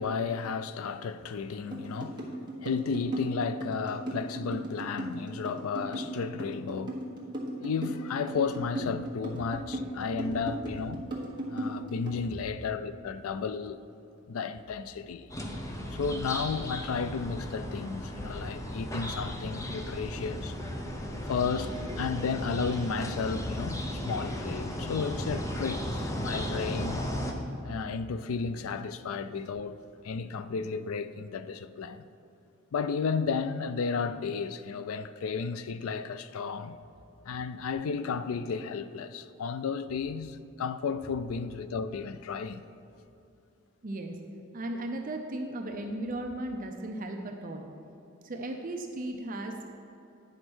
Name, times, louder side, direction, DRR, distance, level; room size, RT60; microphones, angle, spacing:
voice 1, 0.0-7.0 7.6-11.0 11.5-13.8 14.3-15.3 15.9-20.5 21.3-27.0 27.6-29.8 30.0-32.0 32.7-36.8 37.3-42.6, left 5 dB, 75° left, 0.4 m, -33 dB
sound 1, 1.7-12.2, right 1 dB, 20° right, 1.3 m, -36 dB
sound 2, 15.3-27.3, left 1 dB, 15° left, 0.6 m, -35 dB
voice 2, 43.8-44.2 44.5-47.7 48.2-49.6, right 1 dB, 40° right, 0.6 m, -36 dB
10.0 x 4.4 x 6.2 m
head